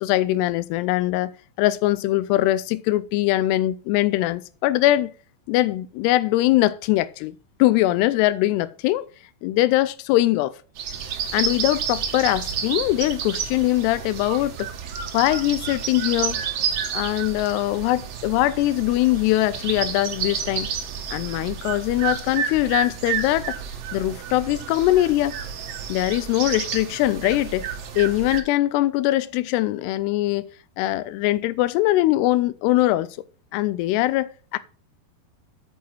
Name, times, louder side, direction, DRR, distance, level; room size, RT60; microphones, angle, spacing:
voice 1, 0.0-1.3 1.6-5.1 5.5-9.1 9.4-10.6 11.3-14.7 15.1-16.4 16.9-20.7 21.1-23.6 23.9-25.4 25.9-27.7 28.0-30.5 30.8-33.1 33.5-34.6, left 16 dB, 85° left, 2.6 m, -22 dB
sound 1, 10.8-28.4, right 7 dB, 70° right, 1.5 m, -30 dB
8.7 x 7.4 x 4.4 m
omnidirectional pair, 4.7 m